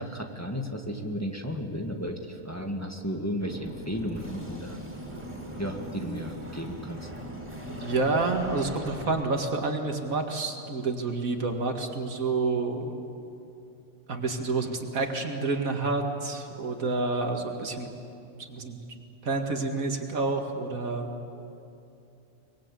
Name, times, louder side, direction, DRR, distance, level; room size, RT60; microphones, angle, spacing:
voice 1, 0.0-4.8 5.6-7.1, equal, 10° left, 2 dB, 1.7 m, -34 dB
sound 1, 3.4-9.0, equal, 25° right, 5.1 m, -40 dB
voice 2, 7.8-12.9 14.1-17.9 18.5-18.8 19.2-21.1, right 3 dB, 85° right, 3 dB, 2.5 m, -29 dB
24.0 x 22.5 x 8.4 m, 2.7 s
omnidirectional pair, 1.4 m